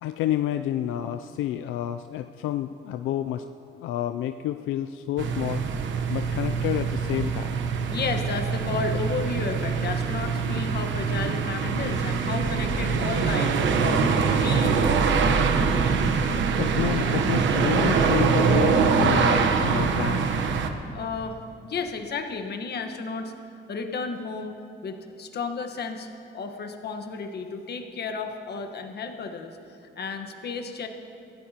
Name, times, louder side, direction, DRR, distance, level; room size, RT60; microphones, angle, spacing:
voice 1, 0.0-3.4 3.7-5.6 6.1-7.6 16.5-20.3, left 11 dB, 90° left, 8 dB, 0.4 m, -29 dB
sound 1, 5.2-20.7, right 5 dB, 70° right, 1.0 m, -24 dB
voice 2, 7.9-15.2 20.9-21.4 21.6-23.3 23.7-24.6 24.8-29.6 30.0-30.9, left 4 dB, 55° left, 4 dB, 1.3 m, -33 dB
21.5 x 15.0 x 2.9 m, 2.7 s
cardioid pair, 90°, 20 cm